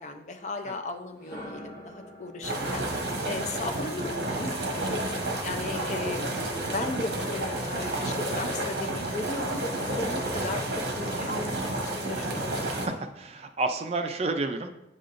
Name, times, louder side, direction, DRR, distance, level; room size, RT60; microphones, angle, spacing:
voice 1, 0.0-2.8 3.2-10.7 10.9-12.6, left 2 dB, 40° left, 5 dB, 0.5 m, -36 dB
sound 1, 1.1-5.1, equal, 20° left, 1.4 m, -47 dB
sound 2, 2.4-12.9, right 1 dB, 65° right, 1.2 m, -31 dB
voice 2, 3.1-3.4 12.7-14.7, right 3 dB, 35° right, 6 dB, 0.4 m, -31 dB
7.5 x 5.3 x 2.5 m, 0.89 s
head